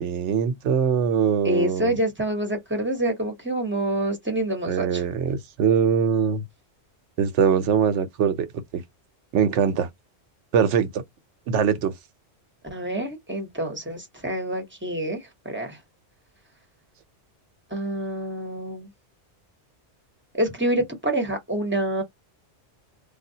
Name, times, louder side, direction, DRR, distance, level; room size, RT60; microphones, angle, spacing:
voice 1, 0.0-1.9 4.6-6.4 7.2-8.8 9.3-9.9 10.5-11.0 11.5-11.9, right 7 dB, 80° right, 1.0 m, -22 dB
voice 2, 1.4-5.0 12.7-15.2 15.4-15.8 17.7-18.9 20.3-22.0, right 1 dB, 10° right, 0.9 m, -27 dB
3.5 x 2.3 x 2.7 m
omnidirectional pair, 1.2 m